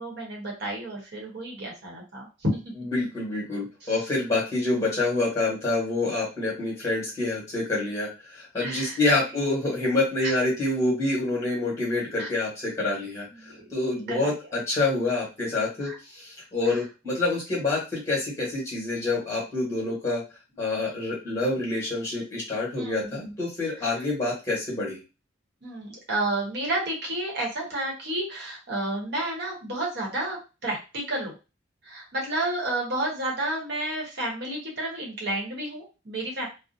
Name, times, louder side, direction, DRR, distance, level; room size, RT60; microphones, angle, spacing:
voice 1, 0.0-2.6 3.8-4.1 8.6-9.0 10.2-10.3 12.2-12.3 13.4-13.7 14.1-14.3 15.8-15.9 16.6-16.8 22.8-23.3 23.7-24.0 25.6-31.3 31.8-36.5, right 1 dB, 60° right, -2 dB, 0.9 m, -31 dB
voice 2, 2.8-20.2 20.6-25.0, left 2 dB, 15° left, -5 dB, 1.2 m, -27 dB
2.5 x 2.0 x 2.6 m, 0.30 s
head